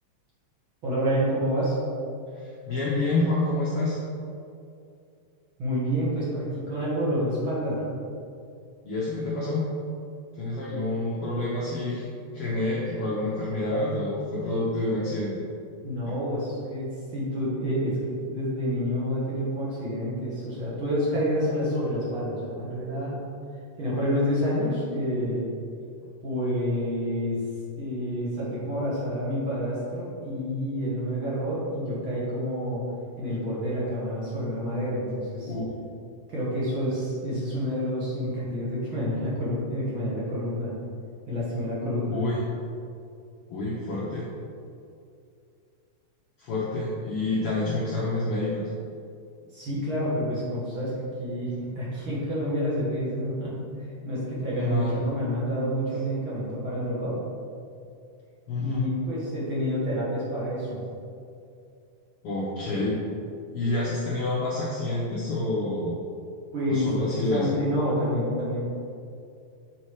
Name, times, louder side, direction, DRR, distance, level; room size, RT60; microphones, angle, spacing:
voice 1, 0.8-1.8 5.6-7.8 10.7-10.8 11.4-11.5 15.8-23.2 23.8-25.5 26.2-27.4 27.8-32.8 33.2-35.5 36.3-40.7 41.3-42.2 49.5-53.7 54.0-57.2 58.6-60.8 66.5-68.6, equal, 45° right, -8 dB, 2.1 m, -28 dB
voice 2, 2.3-4.0 8.8-9.7 10.4-12.1 12.3-15.4 35.5-35.6 42.1-42.4 43.5-44.2 46.4-48.7 54.5-55.0 58.5-58.9 62.2-63.0 63.5-66.0 66.7-67.5, left 2 dB, 80° left, -6 dB, 1.3 m, -28 dB
7.0 x 4.4 x 4.8 m, 2.5 s
omnidirectional pair, 3.9 m